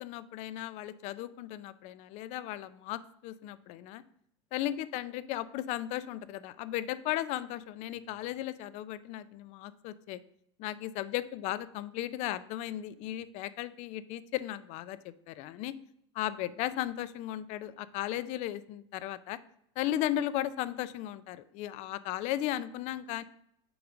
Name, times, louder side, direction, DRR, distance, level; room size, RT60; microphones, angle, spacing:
voice 1, 0.0-4.0 4.5-10.2 10.6-15.8 16.1-19.4 19.8-23.2, left 13 dB, 50° left, 16 dB, 0.4 m, -36 dB
6.1 x 3.7 x 6.0 m, 0.74 s
supercardioid pair, 130°, 15 cm